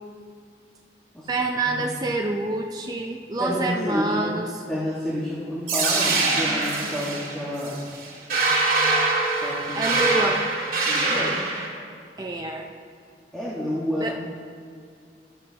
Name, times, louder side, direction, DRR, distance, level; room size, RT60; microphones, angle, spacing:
voice 1, 1.3-4.5 9.7-10.5 12.2-12.7 14.0-14.2, right 2 dB, 20° right, 2 dB, 0.4 m, -27 dB
voice 2, 3.4-4.3 4.7-7.7 9.4-10.0 10.8-11.3 13.3-14.1, left 1 dB, 5° left, -8 dB, 1.4 m, -29 dB
sound 1, 5.7-11.7, right 3 dB, 55° right, 2.1 m, -23 dB
12.5 x 11.0 x 2.8 m, 2.3 s
head